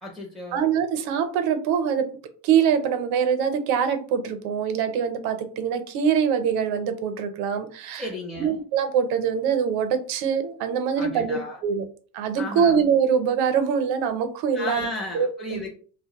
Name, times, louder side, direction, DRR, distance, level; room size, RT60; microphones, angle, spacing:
voice 1, 0.0-0.6 7.9-8.6 11.0-11.6 12.3-12.8 14.5-15.7, left 1 dB, ahead, -1 dB, 0.4 m, -34 dB
voice 2, 0.5-2.1 2.4-8.1 8.4-11.8 12.1-14.9 15.1-15.6, right 7 dB, 70° right, 9 dB, 0.6 m, -24 dB
2.2 x 2.0 x 2.8 m, 0.41 s
supercardioid pair, 90°, 39 cm